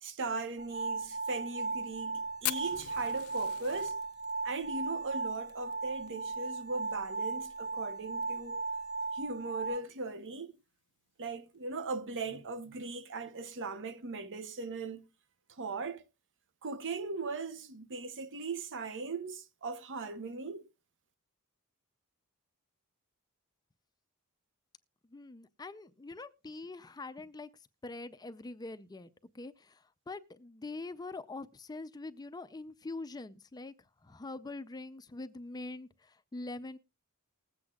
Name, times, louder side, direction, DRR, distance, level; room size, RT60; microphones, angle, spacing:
voice 1, 0.0-4.0 4.4-8.6 9.1-10.6 11.2-15.1 15.5-16.0 16.6-20.7, right 3 dB, 55° right, 0.9 m, -39 dB
sound 1, 0.6-9.8, right 3 dB, 70° right, 2.0 m, -37 dB
Fire, 2.4-6.9 7.2-7.3 7.6-7.7 8.0-8.5 9.0-9.1 10.1-10.3, left 14 dB, 75° left, 0.7 m, -41 dB
voice 2, 25.1-27.5 27.8-33.7 34.0-36.8, left 2 dB, 20° left, 0.4 m, -44 dB
20.0 x 8.0 x 2.3 m
head